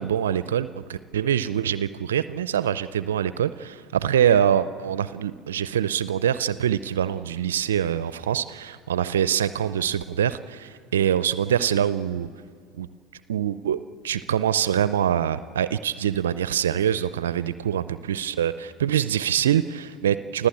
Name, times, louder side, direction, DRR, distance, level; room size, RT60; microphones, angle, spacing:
voice 1, 0.0-12.3 12.8-12.9 13.3-13.8 14.0-20.5, right 9 dB, 80° right, 15 dB, 0.5 m, -24 dB
29.0 x 15.0 x 8.6 m, 2.1 s
hypercardioid pair, 75°, 0 cm